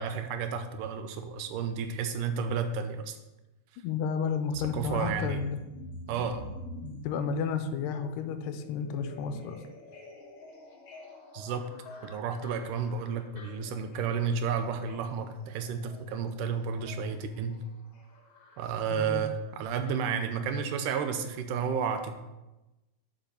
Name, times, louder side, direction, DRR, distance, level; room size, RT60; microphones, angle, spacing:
voice 1, 0.0-3.2 4.5-5.4 6.1-6.4 11.3-11.6 12.0-17.5 18.6-22.1, right 6 dB, 80° right, 7 dB, 2.1 m, -32 dB
voice 2, 3.8-5.6 6.8-9.6 18.9-19.2, left 6 dB, 80° left, 8 dB, 2.1 m, -32 dB
sound 1, 4.5-20.6 20.9-21.0, left 1 dB, 60° left, 1.3 m, -47 dB
7.1 x 5.1 x 5.6 m, 1.0 s
omnidirectional pair, 3.9 m